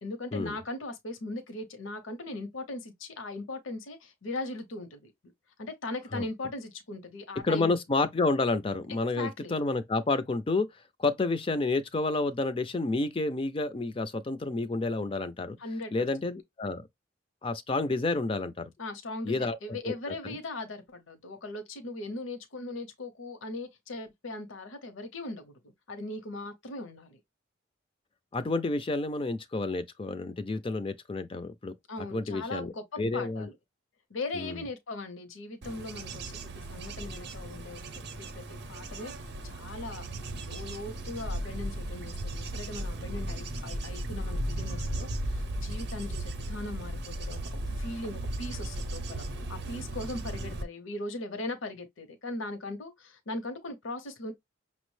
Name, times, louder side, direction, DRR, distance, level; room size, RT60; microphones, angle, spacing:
voice 1, 0.0-5.1 5.6-7.7 9.2-9.5 15.6-16.1 18.8-25.5 25.9-27.2 31.9-33.6 34.1-37.8 38.2-40.1 40.4-54.3, left 2 dB, 65° left, 0.7 m, -39 dB
voice 2, 7.4-10.7 11.0-15.6 15.9-16.9 17.4-18.7 19.2-19.9 20.3-20.4 28.3-31.7 32.1-32.7 33.0-33.5 34.4-34.6, left 3 dB, 25° left, 0.3 m, -30 dB
Bird / Insect / Wind, 35.6-50.6, right 1 dB, 50° right, 0.6 m, -36 dB
5.7 x 2.0 x 3.1 m
head